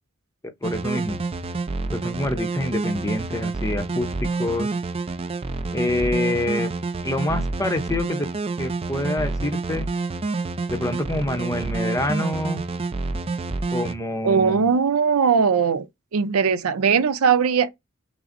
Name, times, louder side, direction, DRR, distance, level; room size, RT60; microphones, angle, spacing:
voice 1, 0.6-1.2 1.9-4.7 5.7-6.7 7.0-8.3 8.6-9.9 10.7-12.6 13.7-14.7, left 1 dB, 15° left, 0.7 m, -26 dB
sound 1, 0.6-13.9, right 3 dB, 25° right, 0.4 m, -28 dB
voice 2, 14.2-15.9 16.1-17.7, right 6 dB, 80° right, 0.5 m, -19 dB
6.0 x 2.0 x 2.5 m
head